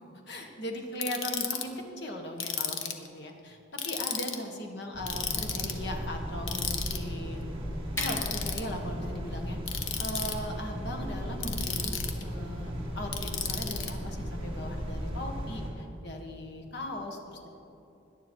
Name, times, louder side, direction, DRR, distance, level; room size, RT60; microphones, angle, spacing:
voice 1, 0.3-3.6 3.8-7.5 8.0-9.6 10.0-17.5, equal, 60° left, 2 dB, 1.7 m, -38 dB
Ratchet pawl, 1.0-1.6 2.4-3.1 3.8-4.4 5.1-5.8 6.5-7.0 8.0-8.6 9.7-10.3 11.4-12.2 13.1-13.9, left 7 dB, 80° left, 1.1 m, -33 dB
sound 1, 4.9-15.7, equal, 30° right, 2.6 m, -36 dB
sound 2, 7.7-13.6, equal, 15° left, 1.8 m, -46 dB
18.0 x 11.0 x 4.6 m, 2.9 s
head